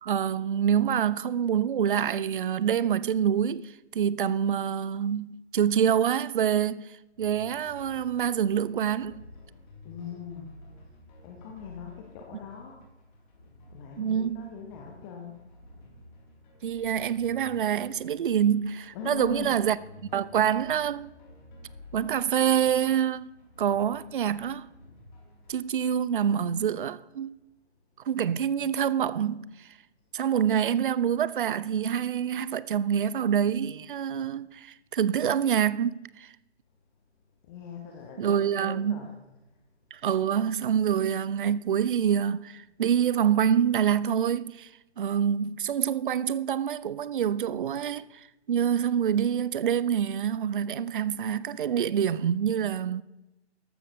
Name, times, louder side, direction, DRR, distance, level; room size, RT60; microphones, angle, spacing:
voice 1, 0.0-6.9 7.2-9.2 14.0-14.5 16.6-19.8 20.1-21.1 21.9-23.3 23.6-24.7 25.5-27.3 28.1-29.7 30.1-36.3 38.2-39.0 39.9-44.7 45.0-53.0, right 8 dB, 50° right, 0.5 m, -26 dB
sound 1, 7.2-25.6, left 2 dB, 40° left, 3.5 m, -52 dB
voice 2, 9.8-10.6 11.2-12.8 13.7-15.4 18.9-19.6 21.0-21.2 25.4-25.5 37.4-39.2, left 5 dB, 20° left, 1.0 m, -41 dB
14.0 x 12.5 x 3.2 m
figure-of-eight pair, 130°, 35 cm